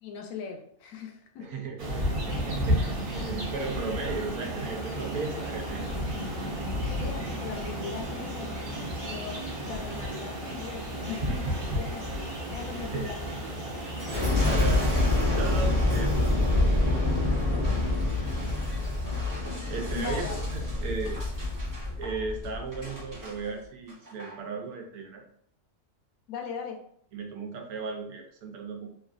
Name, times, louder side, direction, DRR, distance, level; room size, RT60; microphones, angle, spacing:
voice 1, 0.0-1.5 6.9-8.7 9.0-12.2 12.5-13.3 19.9-20.4 26.3-26.8, left 6 dB, 70° left, 3 dB, 0.9 m, -39 dB
voice 2, 1.4-5.9 6.5-6.7 12.8-13.0 14.4-17.0 19.7-21.2 22.0-25.2 27.1-28.9, right 4 dB, 80° right, 2 dB, 1.1 m, -36 dB
sound 1, 1.8-14.3, equal, 50° right, 0.7 m, -33 dB
sound 2, 4.8-18.5, left 3 dB, 85° left, 0.5 m, -43 dB
Boom, 14.0-23.3 23.9-24.3, left 2 dB, 20° right, 0.7 m, -27 dB
3.0 x 2.4 x 2.4 m, 0.65 s
omnidirectional pair, 1.6 m